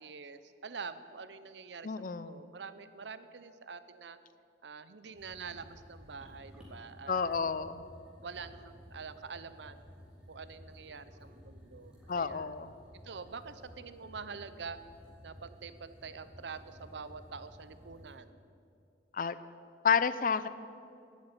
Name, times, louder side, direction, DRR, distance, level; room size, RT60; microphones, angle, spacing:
voice 1, 0.0-4.2 4.6-7.4 8.2-9.8 10.3-12.5 13.0-14.8 15.2-18.4, right 5 dB, 80° right, 13 dB, 0.7 m, -46 dB
voice 2, 1.8-2.4 7.1-7.8 12.1-12.7 19.1-19.4 19.8-20.5, left 6 dB, 50° left, 14 dB, 0.5 m, -30 dB
sound 1, 5.1-18.1, equal, 5° right, 3.8 m, -54 dB
13.0 x 8.6 x 9.7 m, 2.5 s
head